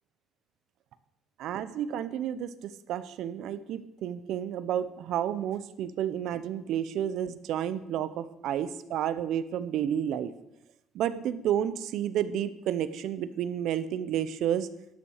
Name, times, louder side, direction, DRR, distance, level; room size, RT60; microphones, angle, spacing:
voice 1, 1.4-10.3 10.9-14.7, right 10 dB, 70° right, 14 dB, 0.7 m, -31 dB
11.5 x 7.2 x 6.5 m, 0.87 s
cardioid pair, 135°, 0 cm